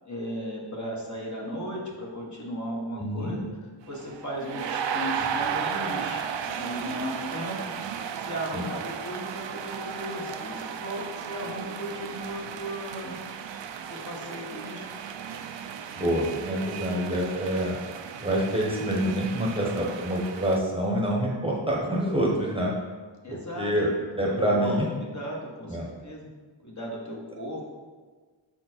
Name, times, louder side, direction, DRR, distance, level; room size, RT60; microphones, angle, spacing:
voice 1, 0.0-3.4 3.8-7.6 8.2-13.2 13.9-14.9 23.2-23.7 24.2-26.3 26.6-27.7, equal, 35° left, -2 dB, 1.3 m, -36 dB
voice 2, 3.0-3.3 8.5-8.6 16.0-17.8 18.2-22.7 23.3-23.9 24.2-24.9 25.7-25.9, equal, 10° right, -3 dB, 1.0 m, -26 dB
sound 1, 3.9-20.6, right 7 dB, 65° right, 0.5 m, -35 dB
6.1 x 4.4 x 4.4 m, 1.4 s
wide cardioid pair, 105°, 47 cm